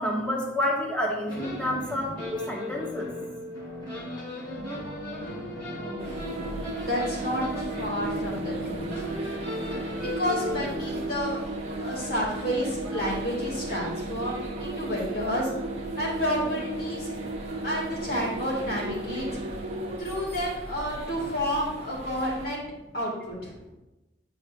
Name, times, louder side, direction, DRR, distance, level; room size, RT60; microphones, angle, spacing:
voice 1, 0.0-3.1 12.9-13.0, left 1 dB, 5° left, -2 dB, 1.1 m, -29 dB
sound 1, 1.3-11.2, left 1 dB, 25° left, 2.2 m, -37 dB
sound 2, 4.6-20.0, right 2 dB, 75° right, 0.6 m, -35 dB
voice 2, 5.7-9.1 9.9-15.5 16.0-17.1 17.6-19.4 20.0-22.6 22.9-23.5, equal, 55° left, -4 dB, 2.2 m, -31 dB
sound 3, 6.0-22.5, right 1 dB, 35° right, 0.9 m, -41 dB
9.2 x 4.7 x 2.5 m, 1.0 s
head